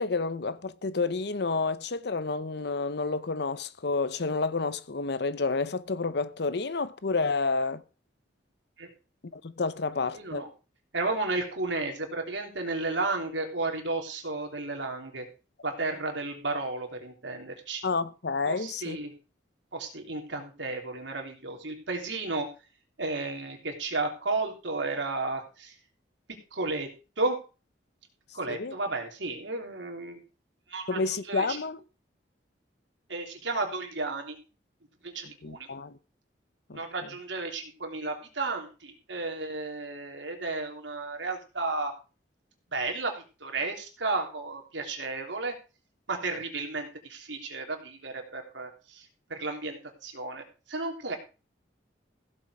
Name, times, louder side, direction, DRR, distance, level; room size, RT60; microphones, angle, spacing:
voice 1, 0.0-7.8 9.3-10.4 17.8-19.0 28.5-28.8 30.9-31.8 35.4-36.0 36.7-36.8, left 4 dB, 65° left, 0.8 m, -30 dB
voice 2, 10.1-10.5 10.9-15.2 15.6-17.8 18.4-19.1 19.7-22.5 23.0-25.7 26.5-26.9 27.2-27.4 28.3-30.2 30.7-31.0 31.3-31.6 33.1-34.4 35.0-35.7 36.7-41.9 42.7-43.1 43.4-45.5 46.1-51.2, right 3 dB, 85° right, 3.2 m, -33 dB
15.5 x 7.4 x 4.9 m
head